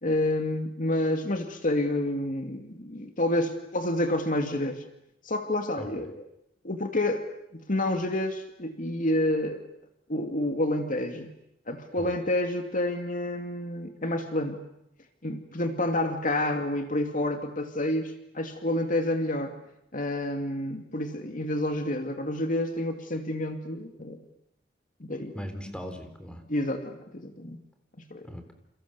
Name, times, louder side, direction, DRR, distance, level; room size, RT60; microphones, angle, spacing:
voice 1, 0.0-4.8 5.2-6.2 6.6-7.2 7.7-9.6 10.1-11.3 11.7-14.6 15.2-19.5 19.9-24.2 25.0-25.4 26.5-27.6 28.0-28.3, left 1 dB, 45° left, 5 dB, 2.5 m, -29 dB
voice 2, 25.3-26.4 28.2-28.5, equal, 5° left, 6 dB, 3.7 m, -39 dB
29.5 x 28.5 x 7.0 m, 0.79 s
head